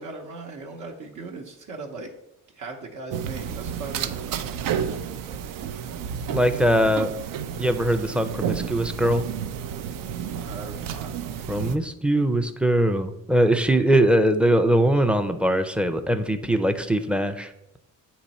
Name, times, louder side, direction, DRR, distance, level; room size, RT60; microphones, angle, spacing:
voice 1, 0.0-2.1 2.5-4.1 10.3-11.5, right 3 dB, 65° right, 1 dB, 0.9 m, -38 dB
sound 1, 3.1-11.8, right 8 dB, 85° right, 0.5 m, -31 dB
voice 2, 6.3-7.1 7.5-9.2 11.5-17.5, right 1 dB, 5° right, 8 dB, 0.4 m, -21 dB
8.7 x 3.1 x 4.1 m, 0.84 s
cardioid pair, 115°, 32 cm